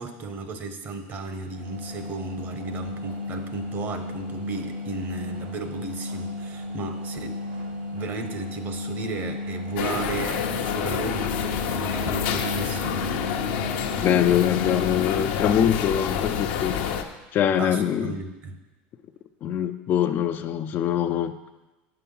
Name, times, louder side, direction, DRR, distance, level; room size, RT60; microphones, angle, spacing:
voice 1, 0.0-7.4 7.9-13.2 17.6-18.6, right 3 dB, 40° right, 7 dB, 1.0 m, -35 dB
sound 1, 1.5-15.1, left 2 dB, 85° right, 2.2 m, -34 dB
sound 2, 9.8-17.0, left 8 dB, 70° left, 0.8 m, -28 dB
voice 2, 14.0-16.8 17.3-18.2 19.4-21.4, left 10 dB, 40° left, 9 dB, 0.4 m, -23 dB
8.1 x 5.8 x 5.5 m, 1.1 s
supercardioid pair, 125°, 5 cm